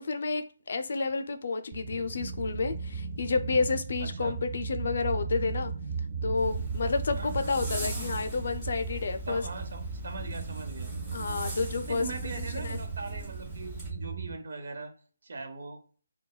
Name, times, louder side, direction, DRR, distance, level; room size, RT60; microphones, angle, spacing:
voice 1, 0.0-5.7 6.2-9.4 11.1-12.1 12.4-12.8, left 4 dB, 55° left, 0.4 m, -30 dB
sound 1, 1.7-14.4, right 5 dB, 30° right, 0.3 m, -36 dB
voice 2, 4.0-4.4 7.1-7.7 9.3-10.9 11.9-14.9 15.2-15.8, right 3 dB, 60° right, 0.9 m, -40 dB
Zipper (clothing), 6.4-13.9, left 1 dB, 10° right, 1.5 m, -41 dB
3.9 x 2.2 x 2.3 m
hypercardioid pair, 165°, 0 cm